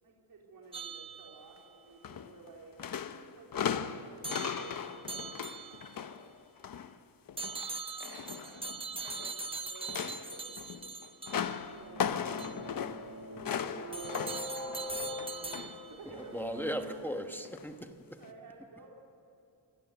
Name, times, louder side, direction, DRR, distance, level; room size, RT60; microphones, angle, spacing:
voice 1, 0.0-2.8 3.1-6.3 7.9-8.7 9.1-10.8 11.2-11.5 11.7-12.1 13.5-15.4 15.8-17.4 18.2-18.9, right 3 dB, 60° right, -2 dB, 4.0 m, -53 dB
sound 1, 0.7-1.7 4.2-6.0 7.4-11.7 12.4-12.6 13.9-16.0, right 3 dB, 15° right, 1.0 m, -41 dB
sound 2, 2.0-2.5 2.8-6.9 7.3-9.4 9.7-15.9 16.2-16.4 17.4-17.6 18.2-18.3, left 8 dB, 55° left, 1.1 m, -38 dB
sound 3, 11.6-16.9, right 1 dB, 40° right, 5.8 m, -43 dB
voice 2, 16.3-18.2, equal, 5° left, 6 dB, 1.2 m, -37 dB
26.5 x 20.5 x 8.2 m, 2.7 s
wide cardioid pair, 145°, 41 cm